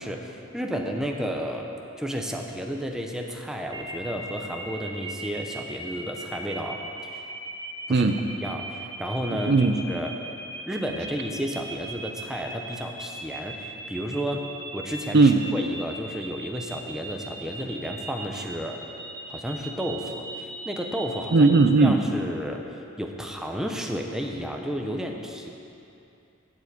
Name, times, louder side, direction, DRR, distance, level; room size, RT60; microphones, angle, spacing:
voice 1, 0.0-1.7 2.0-7.2 7.9-8.1 8.4-10.2 10.7-18.8 19.3-21.5 21.8-22.7 23.0-25.5, equal, 5° right, 1 dB, 0.7 m, -32 dB
sound 1, 3.7-21.6, right 2 dB, 20° right, 0.9 m, -38 dB
voice 2, 21.3-22.0, right 3 dB, 55° right, 6 dB, 0.5 m, -17 dB
7.9 x 7.2 x 8.6 m, 2.7 s
head